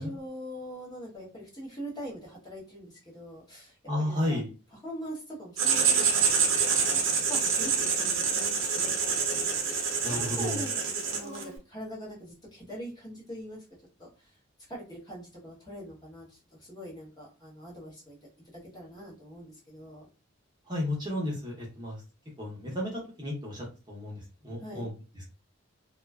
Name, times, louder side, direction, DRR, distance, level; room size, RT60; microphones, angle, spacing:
voice 1, 0.0-4.4 4.7-6.2 6.7-13.6 14.0-14.1 14.7-18.2 18.5-20.1 24.6-24.9, equal, 20° left, -5 dB, 0.8 m, -43 dB
voice 2, 3.9-4.5 10.0-10.6 20.7-22.0 22.4-24.2 24.4-24.9, left 1 dB, 20° right, -4 dB, 0.6 m, -32 dB
Writing, 5.6-11.5, right 6 dB, 70° right, 0.6 m, -27 dB
2.4 x 2.3 x 2.2 m, 0.32 s
head